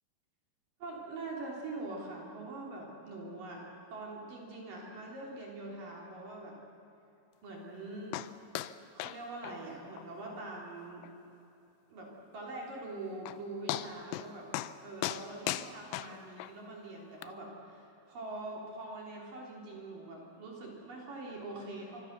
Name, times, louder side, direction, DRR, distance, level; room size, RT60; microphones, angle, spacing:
voice 1, 0.8-6.6 7.4-8.2 8.9-11.1 11.9-14.5 14.8-22.0, right 2 dB, 45° right, -2 dB, 4.8 m, -43 dB
sound 1, 8.1-8.3 8.6-8.7 9.0-9.2 9.4-9.6 10.0-10.1 10.5-10.6 11.0-11.1 12.8-12.9 13.3-13.4 13.7-14.3 14.5-14.7 15.0-16.5 17.2-17.3, left 15 dB, 85° left, 3.2 m, -37 dB
26.0 x 25.0 x 6.8 m, 2.9 s
omnidirectional pair, 5.7 m